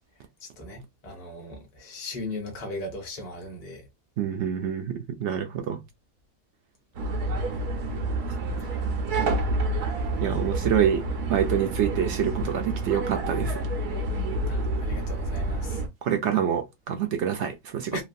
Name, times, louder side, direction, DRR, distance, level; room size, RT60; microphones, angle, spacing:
voice 1, 0.4-3.8 8.6-8.7 14.5-15.8 17.9-18.0, left 1 dB, 30° left, 0.8 m, -37 dB
voice 2, 4.2-5.8 8.3-8.4 10.2-11.0 11.3-13.5 16.0-18.0, right 9 dB, 65° right, 0.7 m, -26 dB
sound 1, 6.9-15.9, right 2 dB, 90° right, 1.3 m, -28 dB
3.1 x 2.3 x 2.6 m
omnidirectional pair, 1.6 m